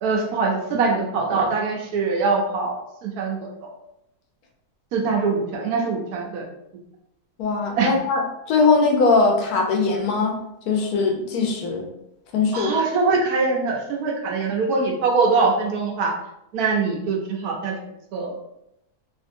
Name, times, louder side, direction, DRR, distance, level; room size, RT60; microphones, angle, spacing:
voice 1, 0.0-3.7 4.9-6.4 7.8-7.9 12.5-16.1 16.5-17.7 18.1-18.3, right 4 dB, 70° right, -1 dB, 1.1 m, -23 dB
voice 2, 7.4-10.3 10.7-11.8 12.3-12.7, left 4 dB, 75° left, 1 dB, 1.1 m, -20 dB
3.4 x 2.6 x 2.6 m, 0.81 s
omnidirectional pair, 1.7 m